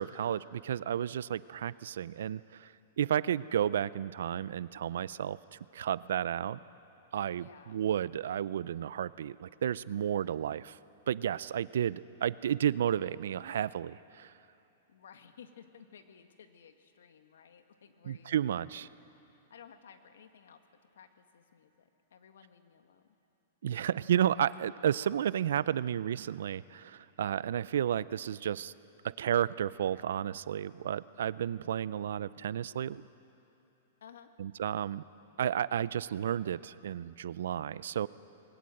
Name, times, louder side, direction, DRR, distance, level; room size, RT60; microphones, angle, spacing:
voice 1, 0.0-2.7 3.0-6.6 7.1-10.8 11.1-14.3 18.1-18.9 23.6-28.7 29.0-33.0 34.4-35.0 35.4-38.1, right 10 dB, 75° right, 19 dB, 0.5 m, -32 dB
voice 2, 7.3-7.8 14.9-18.4 18.8-20.6 20.9-23.1 34.0-34.3, left 7 dB, 85° left, 7 dB, 1.7 m, -56 dB
21.0 x 18.5 x 7.8 m, 3.0 s
hypercardioid pair, 145°, 0 cm